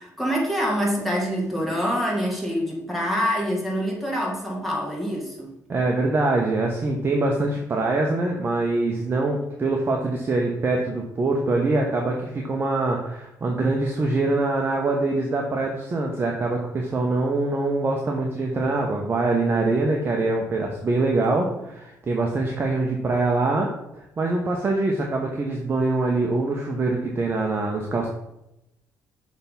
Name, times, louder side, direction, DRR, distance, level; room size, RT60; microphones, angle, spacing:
voice 1, 0.0-5.5, equal, ahead, -3 dB, 2.4 m, -25 dB
voice 2, 5.7-23.7 23.9-28.1, right 2 dB, 35° right, 0 dB, 1.0 m, -24 dB
6.4 x 3.6 x 5.7 m, 0.86 s
cardioid pair, 90°, 7 cm